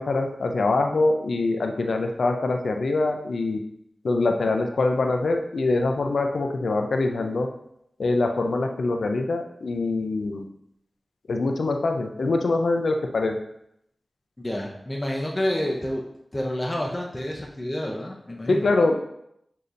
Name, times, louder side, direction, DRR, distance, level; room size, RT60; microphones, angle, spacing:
voice 1, 0.0-3.6 4.0-7.5 8.0-10.4 11.3-13.4 18.5-19.0, left 3 dB, 85° left, 4 dB, 0.5 m, -24 dB
voice 2, 14.4-16.0 16.3-18.7, left 1 dB, 25° left, -2 dB, 0.6 m, -29 dB
6.7 x 2.8 x 2.6 m, 0.76 s
cardioid pair, 55°, 0 cm